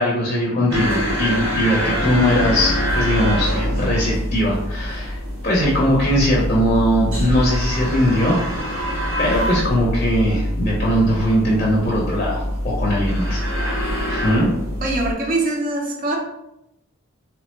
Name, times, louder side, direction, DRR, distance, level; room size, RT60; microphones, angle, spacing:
voice 1, 0.0-5.2 5.4-8.7 9.2-14.5, equal, 30° left, -4 dB, 0.6 m, -20 dB
sound 1, 0.7-15.1, equal, 85° right, 1.1 m, -24 dB
voice 2, 14.8-16.2, right 2 dB, 40° right, 0 dB, 0.5 m, -23 dB
3.2 x 2.1 x 3.0 m, 0.85 s
head